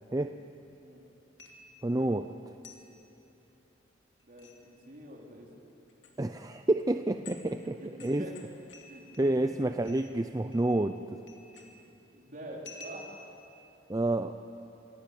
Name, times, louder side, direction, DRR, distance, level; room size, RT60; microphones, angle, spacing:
sound 1, 1.4-1.9 2.6-2.9 4.2-4.6 5.9-6.1 6.8-6.9 7.2-7.5 8.0-9.5 9.8-10.2 10.5-11.0 11.3-11.9 12.6-13.4, left 3 dB, 80° left, 3.0 m, -51 dB
voice 1, 1.8-2.3 6.2-8.3 9.2-11.2 13.9-14.4, right 1 dB, 20° right, 8 dB, 0.5 m, -29 dB
voice 2, 4.2-5.5 7.8-8.3 8.9-9.0 12.1-13.2, right 1 dB, 45° right, -2 dB, 4.1 m, -46 dB
27.5 x 17.5 x 8.5 m, 2.9 s
head